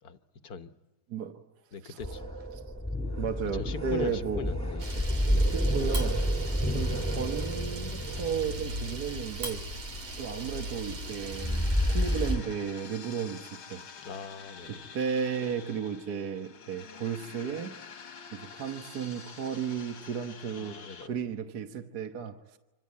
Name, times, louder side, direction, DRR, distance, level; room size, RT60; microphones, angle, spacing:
voice 1, 0.0-0.7 1.7-2.3 3.5-5.5 6.6-6.8 14.0-14.9 20.5-21.3, left 5 dB, 55° left, 1.5 m, -41 dB
voice 2, 1.1-1.4 1.8-2.0 3.2-4.5 5.5-9.7 10.2-13.8 14.7-17.8 18.3-22.6, right 7 dB, 55° right, 1.7 m, -34 dB
sound 1, 2.0-12.4, equal, 5° left, 1.7 m, -30 dB
Camera, 4.8-12.3, right 1 dB, 80° right, 3.8 m, -39 dB
sound 2, 10.8-21.1, left 6 dB, 90° left, 2.8 m, -48 dB
26.5 x 26.5 x 8.5 m
omnidirectional pair, 2.2 m